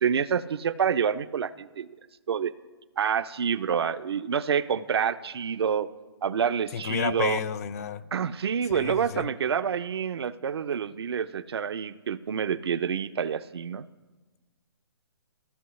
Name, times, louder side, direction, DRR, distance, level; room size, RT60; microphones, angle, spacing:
voice 1, 0.0-1.9 2.3-2.5 3.0-5.9 6.2-7.4 8.1-13.9, right 7 dB, 70° right, 12 dB, 0.5 m, -27 dB
voice 2, 6.7-8.1 8.6-9.3, left 8 dB, 35° left, 15 dB, 0.4 m, -31 dB
15.0 x 5.5 x 3.1 m, 1.3 s
hypercardioid pair, 155°, 14 cm